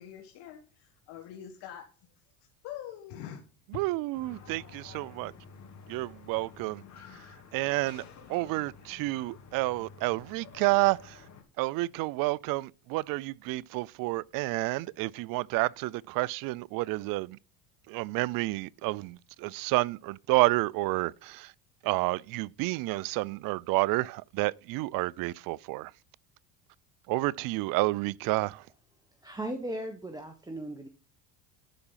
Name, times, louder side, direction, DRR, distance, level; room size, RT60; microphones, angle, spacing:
voice 1, 0.0-2.1 2.6-3.4, left 10 dB, 65° left, 1.7 m, -44 dB
voice 2, 3.7-5.3 5.9-6.8 7.5-8.0 8.3-11.2 11.6-17.4 17.9-21.5 21.8-25.9 27.1-28.6, right 21 dB, 55° right, 0.4 m, -30 dB
sound 1, 4.1-11.4, left 5 dB, 40° left, 2.9 m, -51 dB
voice 3, 29.2-30.9, right 1 dB, 10° right, 1.3 m, -37 dB
12.0 x 4.9 x 5.6 m
supercardioid pair, 105°, 43 cm